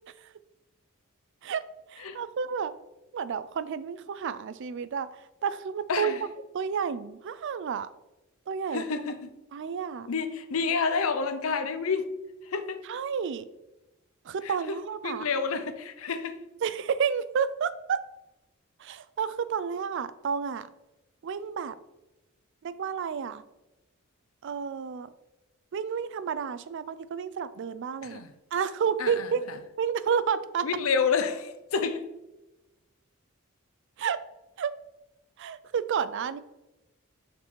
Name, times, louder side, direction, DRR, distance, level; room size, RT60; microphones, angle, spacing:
voice 1, 1.9-2.7 3.1-5.1 5.4-6.1 6.5-7.9 8.5-8.8 9.5-10.1 12.9-13.5 14.3-15.3 16.6-18.0 18.8-20.7 21.2-21.7 22.6-23.4 24.4-25.1 25.7-28.2 28.5-29.5 29.8-30.7 34.0-34.2 34.6-34.7 35.4-36.4, right 6 dB, 60° right, 0.4 m, -30 dB
voice 2, 5.9-6.2 8.7-9.3 10.1-12.1 12.5-12.8 14.4-14.8 15.0-16.4 28.0-28.3 29.0-29.3 30.6-32.1, left 5 dB, 75° left, 0.6 m, -29 dB
6.0 x 4.5 x 4.3 m
head